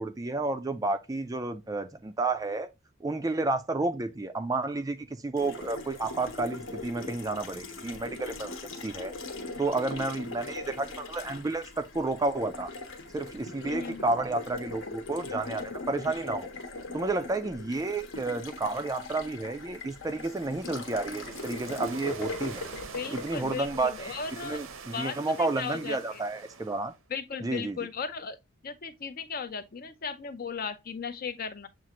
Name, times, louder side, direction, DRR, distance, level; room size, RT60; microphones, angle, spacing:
voice 1, 0.0-2.7 3.0-8.6 8.8-9.1 9.6-12.7 13.1-16.5 16.9-22.6 23.1-26.9 27.4-27.8, right 2 dB, 15° right, 0.3 m, -31 dB
Water tap faucet, 5.4-24.5, left 3 dB, 60° left, 0.9 m, -40 dB
voice 2, 13.6-14.0 22.9-24.6 24.9-26.2 27.1-28.4 28.6-31.7, left 5 dB, 45° left, 0.5 m, -36 dB
sound 1, 19.9-27.0, right 5 dB, 75° right, 0.7 m, -45 dB
7.3 x 2.5 x 2.9 m
head